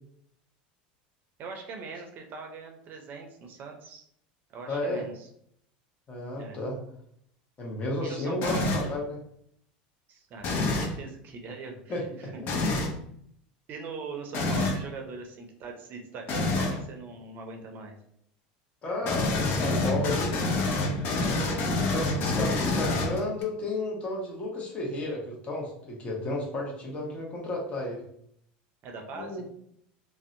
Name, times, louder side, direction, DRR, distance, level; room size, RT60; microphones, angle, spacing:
voice 1, 1.4-4.1 4.5-5.3 6.4-6.6 8.0-8.7 10.1-12.3 13.7-17.9 28.8-29.4, right 4 dB, 45° right, 3 dB, 0.5 m, -41 dB
voice 2, 4.7-5.0 6.1-6.8 7.6-8.6 8.8-9.2 11.9-12.5 18.8-20.3 21.8-28.0 29.1-29.4, left 2 dB, 30° left, -2 dB, 0.9 m, -33 dB
sound 1, 8.4-9.0 10.4-11.0 12.5-12.9 14.3-14.8 16.3-16.8 19.0-23.4, left 2 dB, 50° left, 0.6 m, -27 dB
2.6 x 2.1 x 2.5 m, 0.68 s
supercardioid pair, 105°, 4 cm